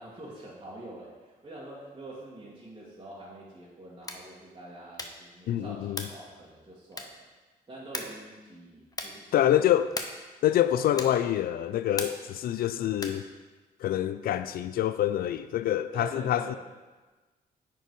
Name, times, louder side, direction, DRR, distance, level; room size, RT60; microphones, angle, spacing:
voice 1, 0.0-7.3 7.7-9.7 10.5-11.1 15.9-16.6, right 1 dB, 30° right, 2.1 m, -45 dB
sound 1, 4.0-4.3 4.9-5.3 5.9-6.3 6.9-7.3 7.9-8.3 8.9-9.3 9.9-10.3 10.9-11.3 11.9-12.4 12.9-13.3, left 2 dB, 25° left, 0.9 m, -38 dB
voice 2, 5.5-6.1 9.3-9.9 10.4-13.2 13.8-16.5, left 11 dB, 75° left, 0.4 m, -26 dB
9.0 x 4.6 x 4.8 m
cardioid pair, 65°, 16 cm